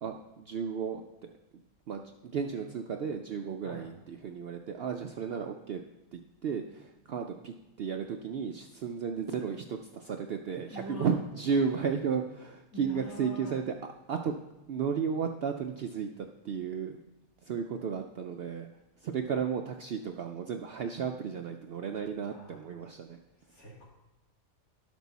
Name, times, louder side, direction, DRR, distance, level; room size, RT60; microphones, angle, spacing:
voice 1, 0.0-1.3 1.9-5.8 6.1-13.7 14.1-14.3 14.7-17.0 17.4-18.7 19.0-23.2, right 6 dB, 70° right, 5 dB, 0.6 m, -34 dB
voice 2, 3.6-3.9 10.7-11.2 12.7-13.6 22.2-22.6 23.5-23.8, right 1 dB, 80° left, -5 dB, 3.0 m, -43 dB
11.5 x 6.3 x 4.0 m, 0.99 s
omnidirectional pair, 1.5 m